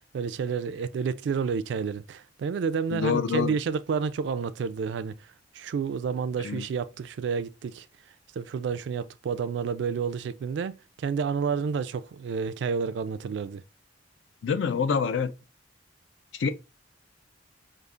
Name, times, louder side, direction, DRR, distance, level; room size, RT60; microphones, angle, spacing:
voice 1, 0.1-5.1 5.5-7.9 8.4-13.6, right 6 dB, 65° right, 0.3 m, -30 dB
voice 2, 2.9-3.6 6.4-6.7 14.4-15.3 16.3-16.5, left 6 dB, 75° left, 0.4 m, -26 dB
5.0 x 2.4 x 2.3 m
head